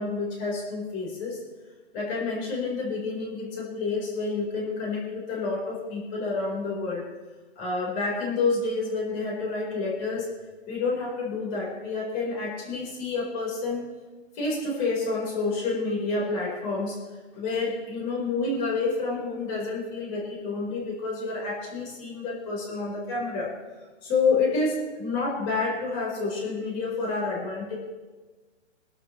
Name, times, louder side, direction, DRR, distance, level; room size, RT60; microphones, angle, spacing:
voice 1, 0.0-1.4 1.9-7.1 7.6-10.3 10.7-13.9 14.3-23.5 24.0-27.8, left 3 dB, 20° left, -3 dB, 4.5 m, -29 dB
23.5 x 12.0 x 3.2 m, 1.3 s
hypercardioid pair, 155°, 37 cm